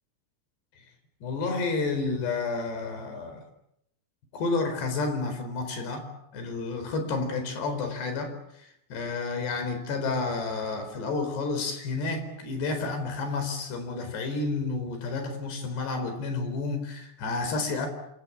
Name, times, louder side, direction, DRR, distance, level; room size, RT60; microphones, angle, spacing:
voice 1, 1.2-3.4 4.3-17.9, left 3 dB, 70° left, 6.5 m, -30 dB
28.5 x 26.0 x 7.4 m
omnidirectional pair, 5.1 m